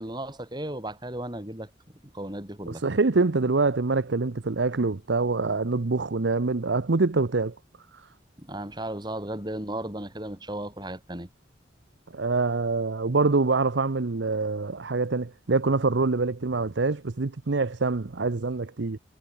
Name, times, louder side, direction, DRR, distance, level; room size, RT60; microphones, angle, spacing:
voice 1, 0.0-1.7 2.1-2.8 8.4-11.3, right 1 dB, 25° right, 4.6 m, -35 dB
voice 2, 2.7-7.5 12.1-19.0, right 3 dB, 75° right, 0.8 m, -25 dB
head